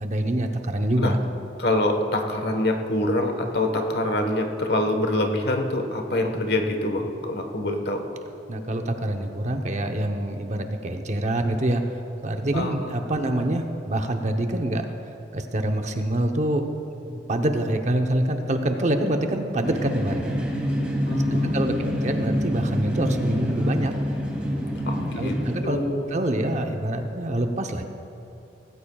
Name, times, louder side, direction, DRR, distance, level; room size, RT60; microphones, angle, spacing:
voice 1, 0.0-1.2 8.5-14.9 15.3-16.7 17.1-20.4 21.3-23.9 25.2-25.8 26.1-27.8, right 1 dB, 40° right, 5 dB, 0.8 m, -26 dB
voice 2, 1.6-8.0 12.5-12.9 13.2-13.3 17.3-17.4 21.1-22.0 24.9-26.1, left 1 dB, 65° left, 4 dB, 1.3 m, -25 dB
sound 1, 19.6-25.6, equal, 5° right, 2.2 m, -26 dB
18.0 x 16.0 x 2.3 m, 3.0 s
head